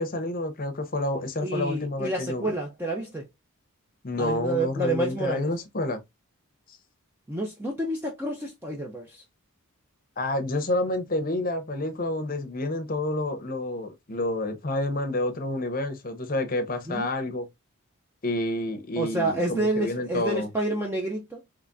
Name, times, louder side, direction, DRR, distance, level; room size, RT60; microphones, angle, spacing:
voice 1, 0.0-2.5 4.0-6.0 6.7-6.8 10.2-17.5 18.2-20.5, left 2 dB, 40° left, 0.7 m, -29 dB
voice 2, 1.4-3.2 4.2-5.5 7.3-9.2 16.9-17.1 19.0-21.4, right 2 dB, 10° right, 0.5 m, -29 dB
3.5 x 3.3 x 2.5 m
head